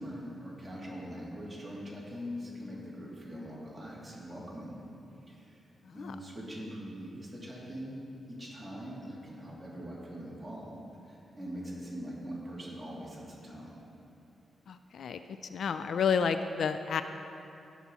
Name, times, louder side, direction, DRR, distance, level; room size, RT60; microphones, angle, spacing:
voice 1, 0.0-4.8 5.3-5.6 5.9-8.0 8.3-13.8, equal, 15° right, -6 dB, 2.7 m, -42 dB
voice 2, 14.7-15.2 15.5-17.0, left 6 dB, 75° left, 10 dB, 0.3 m, -30 dB
17.0 x 5.8 x 4.1 m, 2.7 s
cardioid pair, 110°, 0 cm